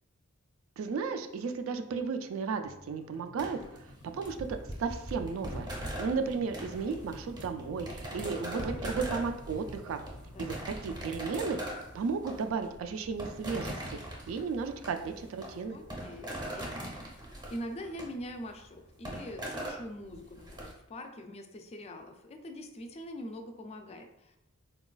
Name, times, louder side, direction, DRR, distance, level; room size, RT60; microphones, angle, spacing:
voice 1, 0.8-3.6 4.1-4.4 4.8-10.0 10.4-13.8 14.3-15.8, right 5 dB, 70° right, 8 dB, 0.3 m, -34 dB
sound 1, 2.5-11.0, left 1 dB, 80° left, 0.7 m, -56 dB
sound 2, 3.4-20.7, right 1 dB, 20° right, 0.7 m, -41 dB
voice 2, 5.9-6.6 10.3-10.6 15.7-24.4, equal, 30° left, 5 dB, 0.3 m, -44 dB
3.9 x 2.2 x 2.3 m, 0.84 s
head